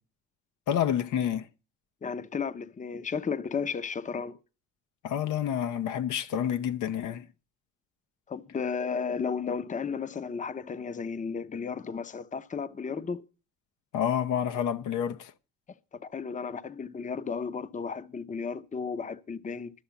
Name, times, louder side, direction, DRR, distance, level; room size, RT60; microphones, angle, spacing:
voice 1, 0.7-1.5 5.0-7.3 13.9-15.3, left 9 dB, 80° left, 0.8 m, -28 dB
voice 2, 2.0-4.4 8.3-13.2 15.9-19.7, left 5 dB, 25° left, 0.7 m, -34 dB
12.0 x 6.6 x 7.0 m
cardioid pair, 90°, 30 cm